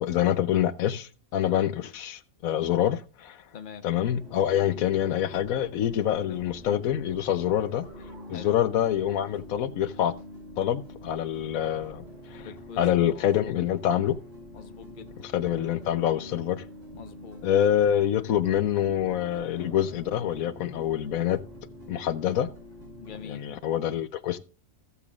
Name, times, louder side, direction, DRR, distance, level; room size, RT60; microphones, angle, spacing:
voice 1, 0.0-3.4 3.8-7.9 8.3-10.1 10.6-12.0 12.3-12.5 12.8-14.2 15.2-16.6 17.4-21.4 21.9-22.5 23.2-24.4, left 10 dB, 90° left, 1.2 m, -26 dB
sound 1, 4.0-23.3, equal, 50° right, 5.5 m, -45 dB
voice 2, 12.4-12.8 13.1-13.5 14.5-15.1 16.9-17.4 23.0-23.4, left 7 dB, 40° left, 0.9 m, -44 dB
15.5 x 6.9 x 2.5 m
omnidirectional pair, 1.4 m